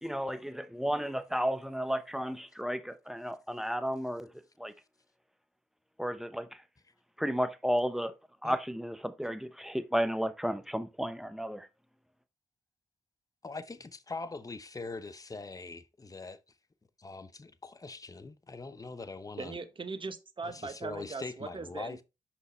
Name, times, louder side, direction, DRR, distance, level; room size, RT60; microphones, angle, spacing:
voice 1, 0.0-4.3 4.6-4.7 6.0-6.6 7.2-8.1 8.4-11.7, equal, 5° right, 0.8 m, -33 dB
voice 2, 13.4-16.4 17.0-19.6 20.4-22.0, left 3 dB, 30° left, 0.8 m, -42 dB
voice 3, 19.4-22.0, right 4 dB, 45° right, 1.1 m, -40 dB
5.8 x 5.5 x 3.1 m
supercardioid pair, 40°, 12 cm